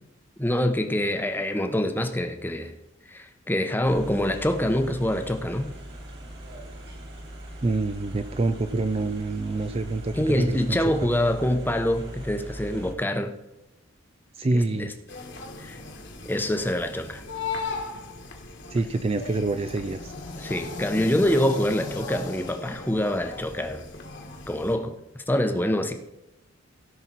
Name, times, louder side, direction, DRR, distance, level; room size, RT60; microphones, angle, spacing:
voice 1, 0.4-2.7 3.1-5.7 10.1-13.3 14.5-14.9 15.6-15.8 16.2-17.2 20.4-23.8 24.5-24.9 25.3-25.9, left 1 dB, 10° left, 6 dB, 0.8 m, -25 dB
sound 1, 3.8-12.9, right 1 dB, 50° right, 2.3 m, -40 dB
voice 2, 7.6-10.8 14.4-14.9 18.7-20.1, right 2 dB, 25° right, 9 dB, 0.4 m, -26 dB
sound 2, 15.1-24.8, left 3 dB, 55° left, 1.6 m, -37 dB
17.0 x 5.8 x 4.1 m, 0.95 s
head